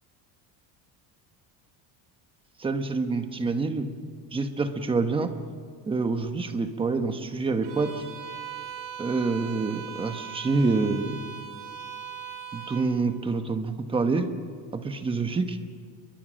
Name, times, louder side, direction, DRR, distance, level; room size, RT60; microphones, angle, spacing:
voice 1, 2.6-3.9 4.3-5.3 5.9-7.9 9.0-11.2 12.5-14.3 14.7-15.4, right 4 dB, 10° right, 7 dB, 1.0 m, -27 dB
Bowed string instrument, 7.6-12.9, right 8 dB, 85° right, 5.5 m, -39 dB
29.0 x 22.0 x 6.3 m, 2.2 s
cardioid pair, 170°, 43 cm